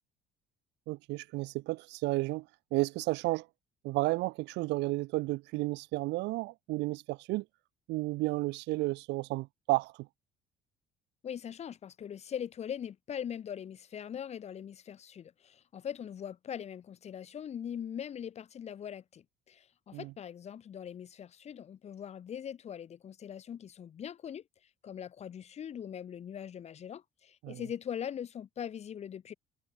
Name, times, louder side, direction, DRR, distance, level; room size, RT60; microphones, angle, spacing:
voice 1, 0.9-3.5 3.8-7.4 7.9-10.1 19.9-20.1 27.4-27.6, right 21 dB, 85° right, 1.9 m, -32 dB
voice 2, 11.2-24.4 24.8-29.3, left 9 dB, 40° left, 7.4 m, -41 dB
cardioid pair, 150°, 17 cm